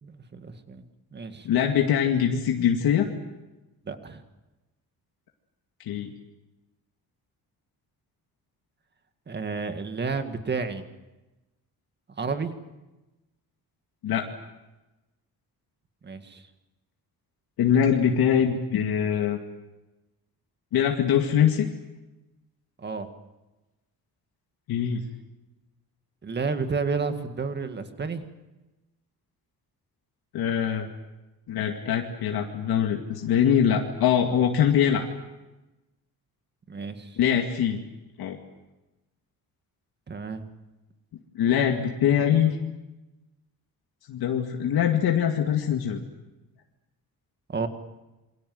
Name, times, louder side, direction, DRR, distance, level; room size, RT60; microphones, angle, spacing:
voice 1, 0.0-0.8 1.1-1.5 3.9-4.2 9.3-10.8 12.2-12.5 16.0-16.4 22.8-23.1 26.2-28.2 36.7-37.2 40.1-40.4 47.5-47.7, right 4 dB, 30° right, 8 dB, 2.0 m, -31 dB
voice 2, 1.4-3.1 5.9-6.1 14.0-14.3 17.6-19.4 20.7-21.7 24.7-25.0 30.3-30.9 31.5-35.1 37.2-37.8 38.2-38.4 41.4-42.6 44.1-46.0, left 8 dB, 80° left, 2 dB, 2.2 m, -23 dB
27.5 x 23.5 x 7.9 m, 1.1 s
cardioid pair, 170°, 37 cm